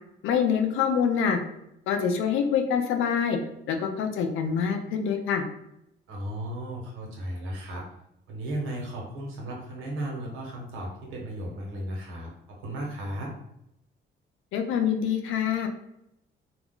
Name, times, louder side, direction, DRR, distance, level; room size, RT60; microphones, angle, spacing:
voice 1, 0.2-1.4 1.9-3.4 3.7-5.4 14.5-15.7, left 7 dB, 85° left, 5 dB, 0.5 m, -25 dB
voice 2, 6.1-7.8 8.3-13.3, right 1 dB, 80° right, -2 dB, 1.0 m, -35 dB
2.4 x 2.1 x 3.7 m, 0.79 s
cardioid pair, 90°, 20 cm